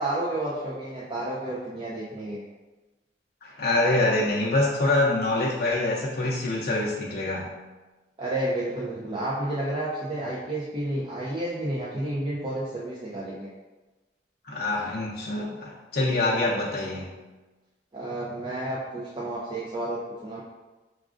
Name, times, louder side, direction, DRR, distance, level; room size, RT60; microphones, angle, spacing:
voice 1, 0.0-2.4 8.2-13.5 17.9-20.4, right 1 dB, 30° right, -6 dB, 0.5 m, -31 dB
voice 2, 3.4-7.5 14.5-17.1, left 2 dB, 55° left, -4 dB, 0.5 m, -25 dB
6.0 x 2.3 x 2.4 m, 1.2 s
head